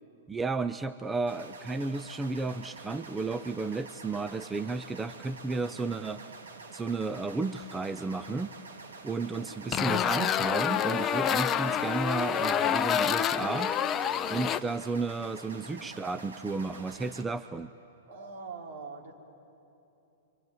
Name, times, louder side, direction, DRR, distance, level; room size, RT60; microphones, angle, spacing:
voice 1, 0.3-6.2 6.7-8.5 9.0-13.7 14.3-17.7, right 3 dB, 10° right, 12 dB, 0.5 m, -33 dB
sound 1, 1.3-17.2, right 4 dB, 90° right, 2.6 m, -47 dB
voice 2, 9.1-9.6 15.5-15.9 18.1-19.1, right 4 dB, 65° right, 0 dB, 4.6 m, -44 dB
sound 2, 9.7-14.6, left 9 dB, 25° left, 0.8 m, -27 dB
25.5 x 24.5 x 9.5 m, 2.9 s
hypercardioid pair, 130°, 0 cm